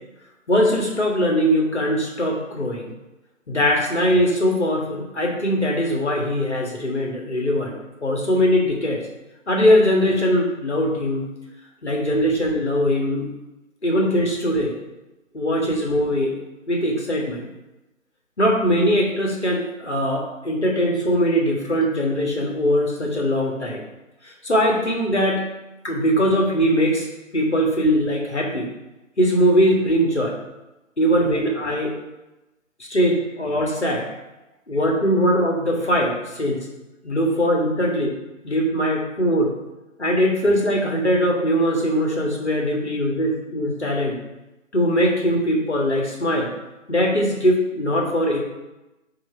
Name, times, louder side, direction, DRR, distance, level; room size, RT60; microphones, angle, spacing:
voice 1, 0.5-2.9 3.5-7.7 8.0-9.0 9.5-11.3 11.8-13.3 13.8-14.8 15.3-16.3 16.7-17.5 18.4-23.8 24.2-25.4 25.8-27.1 27.3-28.7 29.2-30.4 31.0-31.9 32.8-34.2 34.7-36.7 37.0-38.1 38.4-39.5 40.0-44.2 44.7-46.5 46.9-48.4, equal, 55° left, -1 dB, 1.7 m, -21 dB
7.9 x 3.3 x 4.3 m, 1.0 s
figure-of-eight pair, 165°, 41 cm